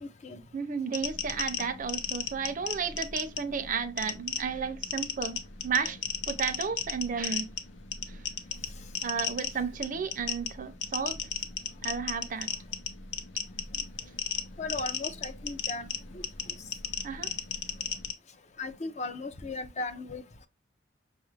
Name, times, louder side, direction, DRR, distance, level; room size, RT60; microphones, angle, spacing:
voice 1, 0.0-0.4 14.6-15.9 16.1-16.2 18.6-20.2, left 3 dB, 40° left, 0.5 m, -36 dB
voice 2, 0.5-6.0 6.3-7.5 8.1-8.2 9.0-11.2 11.8-12.5 17.0-17.3, right 6 dB, 45° right, 0.5 m, -33 dB
sound 1, 0.9-18.1, left 7 dB, 85° left, 0.7 m, -35 dB
6.0 x 2.4 x 3.1 m
head